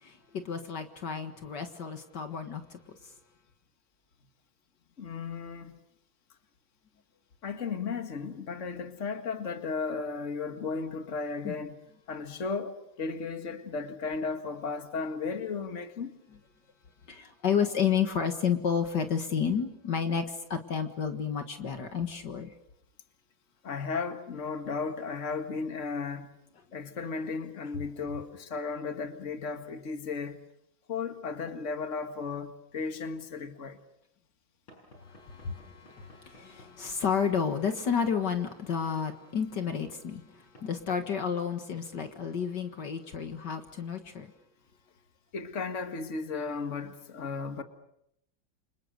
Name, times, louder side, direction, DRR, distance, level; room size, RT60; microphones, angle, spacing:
voice 1, 0.0-3.1 11.4-11.5 17.1-22.6 35.0-44.3, left 7 dB, 65° left, 2.2 m, -31 dB
voice 2, 5.0-5.8 7.4-11.8 12.1-16.2 23.6-26.3 26.7-30.4 30.9-33.8 45.3-47.6, left 4 dB, 40° left, 2.2 m, -35 dB
Knock / Wood, 34.7-37.6 38.5-38.7 39.5-39.7 40.5-40.7, equal, 90° left, 7.7 m, -56 dB
29.5 x 26.5 x 6.7 m
omnidirectional pair, 2.1 m